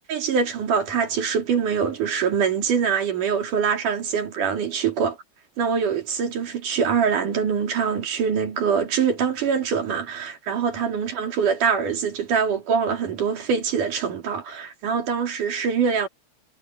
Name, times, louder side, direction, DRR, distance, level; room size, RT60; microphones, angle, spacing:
voice 1, 0.1-5.2 5.6-16.1, right 6 dB, 80° right, 4.5 m, -24 dB
omnidirectional pair, 3.6 m